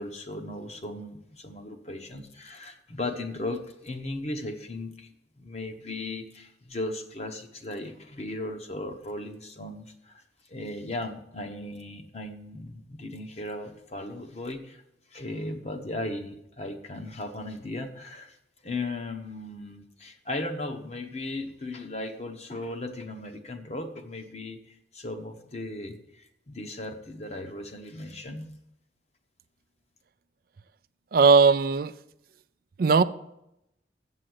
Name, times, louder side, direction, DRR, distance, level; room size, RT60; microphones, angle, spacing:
voice 1, 0.0-5.1 5.4-10.2 10.5-14.8 15.1-18.4 18.6-28.5, left 2 dB, 35° left, 1.1 m, -37 dB
voice 2, 31.1-31.9 32.8-33.0, right 5 dB, 55° right, 0.4 m, -18 dB
7.6 x 7.5 x 7.9 m
head